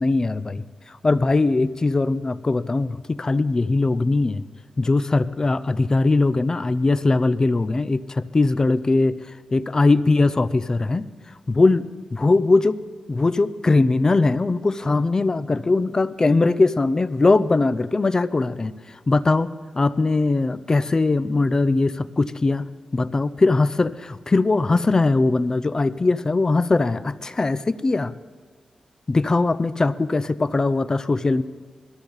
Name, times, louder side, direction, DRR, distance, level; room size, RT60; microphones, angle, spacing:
voice 1, 0.0-4.4 4.8-9.2 9.5-11.1 11.5-12.8 13.1-22.7 22.9-28.1 29.1-31.4, left 3 dB, 30° left, 14 dB, 0.5 m, -20 dB
20.5 x 14.0 x 4.0 m, 1.5 s
wide cardioid pair, 100°, 2 cm